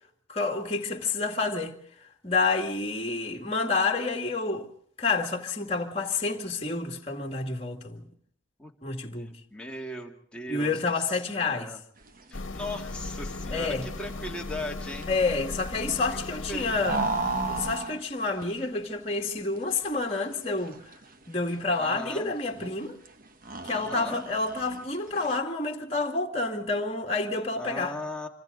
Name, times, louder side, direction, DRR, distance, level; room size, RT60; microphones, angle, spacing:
voice 1, 0.3-1.8 2.2-4.7 5.0-8.1 8.8-9.4 10.5-11.7 13.5-13.9 15.1-17.0 17.5-20.8 21.3-23.0 23.6-28.0, left 3 dB, 30° left, 2.2 m, -29 dB
voice 2, 9.1-10.8 11.3-11.8 12.3-15.1 16.5-16.7 21.8-22.3 23.7-24.2 27.6-28.3, left 1 dB, 5° left, 2.2 m, -38 dB
sound 1, 12.0-25.4, right 3 dB, 45° right, 1.3 m, -37 dB
sound 2, 12.3-17.8, left 2 dB, 65° left, 1.4 m, -37 dB
26.5 x 26.0 x 4.0 m
head